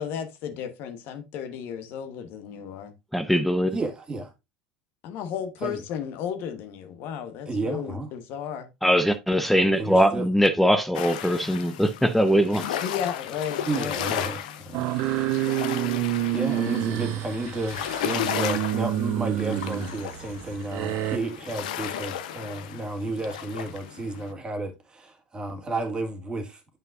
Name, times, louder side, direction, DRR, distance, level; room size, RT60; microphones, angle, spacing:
voice 1, 0.0-2.9 5.0-8.7 12.8-14.0, left 8 dB, 55° left, 1.1 m, -34 dB
voice 2, 3.1-3.8 8.8-12.8, equal, 5° left, 0.6 m, -21 dB
voice 3, 3.7-4.3 5.6-5.8 7.4-8.1 9.8-10.3 13.7-14.9 15.4-15.9 16.3-26.6, right 2 dB, 20° right, 1.8 m, -32 dB
sound 1, 10.9-24.3, left 10 dB, 75° left, 0.7 m, -34 dB
sound 2, 14.7-21.2, right 14 dB, 60° right, 0.9 m, -28 dB
7.7 x 5.5 x 2.5 m
hypercardioid pair, 85°, 4 cm